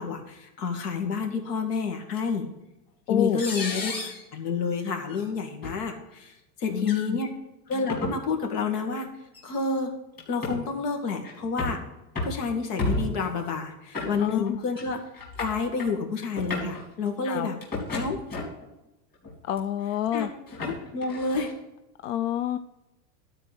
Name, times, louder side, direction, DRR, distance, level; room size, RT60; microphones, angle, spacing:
voice 1, 0.0-2.5 3.1-3.9 4.3-7.3 7.7-9.1 9.4-9.9 10.3-11.8 12.2-15.0 15.4-17.6 17.9-18.2 20.1-20.3 20.6-21.5, left 4 dB, 80° left, 4 dB, 2.3 m, -29 dB
sound 1, 2.1-2.2 3.4-4.2 5.1-5.2 5.6-5.8 6.8-7.0 7.7-8.2 9.3-9.5 10.2-10.6 11.2-11.8 12.2-12.4 12.8-13.3 13.9-14.5 14.8-14.9 15.1-15.9 16.3-16.8 17.6-18.7 19.2-19.6 20.2-21.5, left 2 dB, 20° left, 2.7 m, -32 dB
voice 2, 3.1-3.4 6.7-7.2 14.2-14.6 17.2-17.5 19.4-20.3 22.0-22.6, left 11 dB, 55° left, 11 dB, 0.5 m, -28 dB
12.0 x 4.5 x 7.7 m, 0.95 s
supercardioid pair, 160°, 47 cm